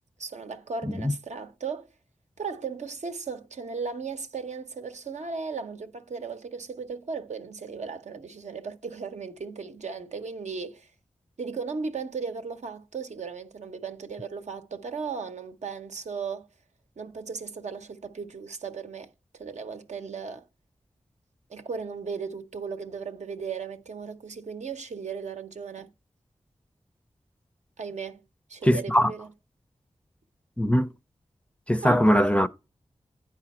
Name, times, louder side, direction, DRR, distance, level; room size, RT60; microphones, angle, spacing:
voice 1, 0.2-1.9 2.4-10.9 11.4-16.5 17.0-20.4 21.5-25.9 27.8-28.2 28.5-29.3 31.8-32.4, right 5 dB, 75° right, 0.8 m, -36 dB
voice 2, 0.8-1.1 28.6-29.1 30.6-30.9 31.7-32.5, equal, 10° left, 0.4 m, -21 dB
9.2 x 4.9 x 4.2 m
wide cardioid pair, 65°, 12 cm